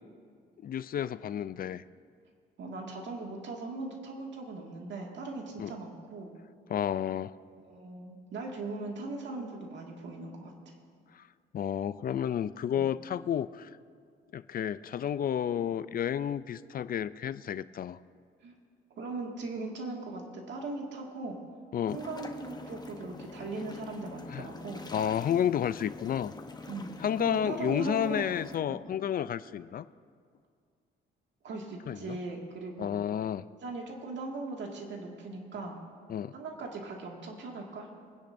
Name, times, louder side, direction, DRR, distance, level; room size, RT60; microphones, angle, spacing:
voice 1, 0.6-1.8 5.6-5.7 6.7-7.3 11.1-11.2 11.5-13.7 14.3-18.0 21.7-22.0 24.3-24.5 24.9-26.3 27.0-29.8 31.9-32.2 32.8-33.5 36.1-36.3, left 9 dB, 50° left, 16 dB, 0.4 m, -31 dB
voice 2, 2.6-6.3 7.6-10.7 12.7-12.9 18.4-18.5 19.0-21.4 21.9-24.8 26.7-26.9 27.2-28.3 28.7-28.8 31.4-32.9 33.6-35.8 36.3-37.9, right 3 dB, 65° right, 0 dB, 2.1 m, -39 dB
sound 1, 21.9-28.6, left 3 dB, 20° left, 0.9 m, -45 dB
25.0 x 10.0 x 2.6 m, 2.1 s
cardioid pair, 90°, 20 cm